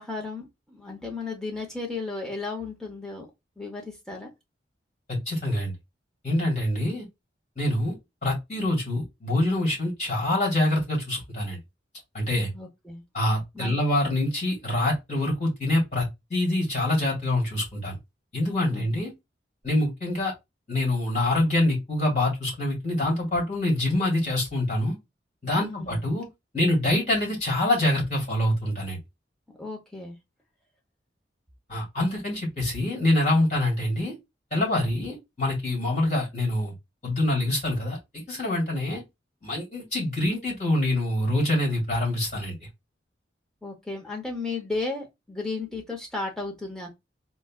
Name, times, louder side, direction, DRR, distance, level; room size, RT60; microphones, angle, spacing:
voice 1, 0.0-3.3 3.6-4.3 8.5-8.6 12.5-13.0 13.5-13.8 18.7-18.9 25.6-26.0 29.6-30.2 43.6-46.9, left 3 dB, 5° left, 0.9 m, -34 dB
voice 2, 5.1-5.7 6.2-7.1 7.6-7.9 8.2-11.6 12.1-12.5 13.1-18.0 18.3-19.1 19.6-20.3 20.7-24.9 25.4-26.3 26.5-29.0 31.7-34.1 34.5-36.7 37.0-38.0 38.3-39.0 39.4-42.6, left 1 dB, 40° left, 2.4 m, -25 dB
4.1 x 2.3 x 2.4 m
head